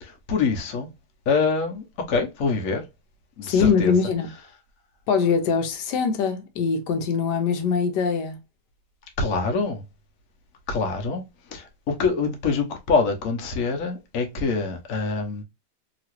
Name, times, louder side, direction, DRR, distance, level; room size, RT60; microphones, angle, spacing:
voice 1, 0.0-0.9 1.3-2.8 3.4-3.9 9.2-9.8 10.7-11.2 11.5-15.4, left 4 dB, 60° left, 1.1 m, -25 dB
voice 2, 3.4-4.3 5.1-8.4, left 5 dB, 80° left, 1.2 m, -22 dB
3.0 x 2.8 x 2.9 m
omnidirectional pair, 1.8 m